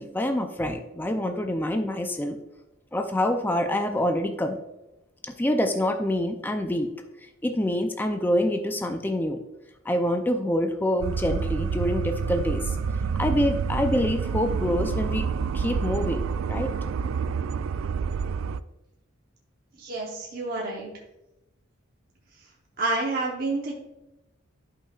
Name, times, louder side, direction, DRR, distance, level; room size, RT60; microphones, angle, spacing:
voice 1, 0.0-2.4 2.9-4.6 5.2-6.9 7.4-9.4 9.8-12.7 13.2-15.2 15.5-16.7, left 1 dB, 10° left, 5 dB, 0.4 m, -26 dB
sound 1, 11.0-18.6, right 6 dB, 75° right, 0.3 m, -28 dB
voice 2, 19.8-20.9 22.8-23.7, right 2 dB, 45° right, -2 dB, 1.0 m, -29 dB
11.5 x 5.6 x 2.4 m, 0.93 s
head